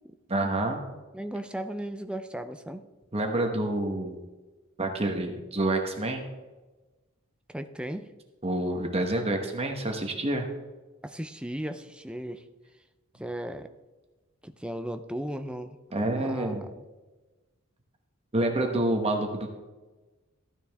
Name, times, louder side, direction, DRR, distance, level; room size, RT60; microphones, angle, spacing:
voice 1, 0.3-0.8 3.1-4.2 4.8-6.2 8.4-10.4 15.9-16.6 18.3-19.5, right 1 dB, 30° right, 3 dB, 1.2 m, -28 dB
voice 2, 1.1-2.8 7.5-8.1 11.0-12.4 13.2-13.7 14.4-15.8 16.2-16.8, right 1 dB, 5° right, 8 dB, 0.5 m, -36 dB
14.5 x 9.6 x 3.5 m, 1.2 s
head